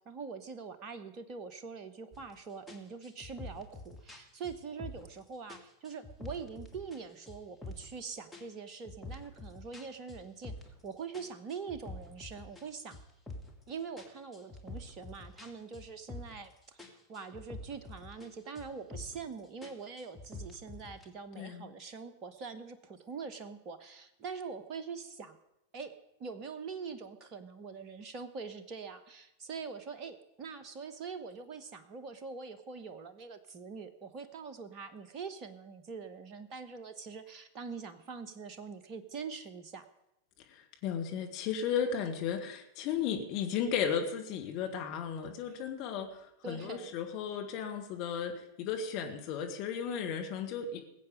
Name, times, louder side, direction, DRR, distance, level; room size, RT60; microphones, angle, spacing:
voice 1, 0.0-10.5 10.8-13.0 13.7-25.4 25.7-39.8 45.5-45.6 46.4-46.9, right 5 dB, 35° right, 9 dB, 1.1 m, -44 dB
sound 1, 2.1-2.3 2.7-5.2 5.5-7.0 7.3-8.0 8.3-10.8 11.1-13.6 14.0-16.5 16.8-18.3 18.6-19.3 19.6-21.1, left 2 dB, ahead, 2.1 m, -47 dB
voice 2, 21.4-21.7 40.5-40.6 40.8-46.1 46.5-50.8, left 7 dB, 40° left, 4 dB, 2.2 m, -34 dB
21.0 x 8.1 x 5.2 m, 0.86 s
figure-of-eight pair, 90°, 0 cm